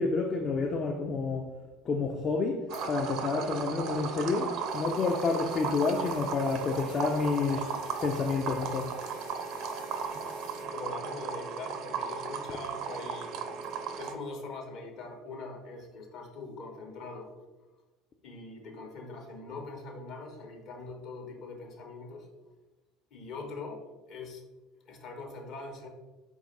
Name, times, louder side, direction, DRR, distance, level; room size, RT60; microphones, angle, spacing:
voice 1, 0.0-1.5 1.8-7.8 8.0-8.9, left 4 dB, 35° left, 1 dB, 0.4 m, -29 dB
sound 1, 2.7-3.0 3.9-10.6, left 2 dB, 90° left, 0.9 m, -54 dB
sound 2, 2.7-14.1, right 5 dB, 50° right, 0.4 m, -36 dB
voice 2, 10.6-17.3 18.2-22.3 23.1-25.9, left 3 dB, 50° left, 2 dB, 0.9 m, -43 dB
4.4 x 2.4 x 3.9 m, 1.2 s
figure-of-eight pair, 65°, 0 cm